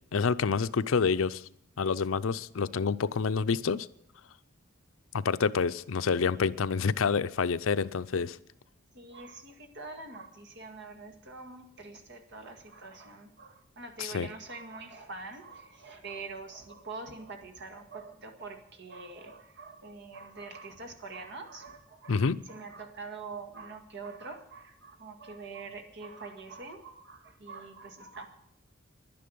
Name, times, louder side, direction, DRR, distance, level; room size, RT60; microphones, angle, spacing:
voice 1, 0.1-1.4 1.8-3.9 5.1-8.4 14.0-14.3 22.1-22.4, left 5 dB, 80° left, 13 dB, 0.5 m, -28 dB
voice 2, 8.9-28.3, right 3 dB, 60° right, 5 dB, 1.9 m, -44 dB
11.0 x 10.5 x 9.4 m, 0.75 s
head